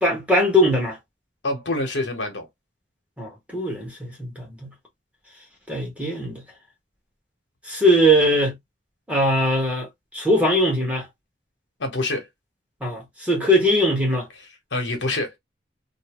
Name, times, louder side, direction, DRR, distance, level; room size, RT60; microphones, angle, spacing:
voice 1, 0.0-1.0 3.2-4.7 5.7-6.4 7.7-8.5 9.1-9.9 10.1-11.1 12.8-14.3, equal, 5° right, 1.2 m, -20 dB
voice 2, 1.4-2.5 11.8-12.3 14.7-15.3, left 2 dB, 75° left, 1.1 m, -26 dB
2.7 x 2.7 x 3.0 m
head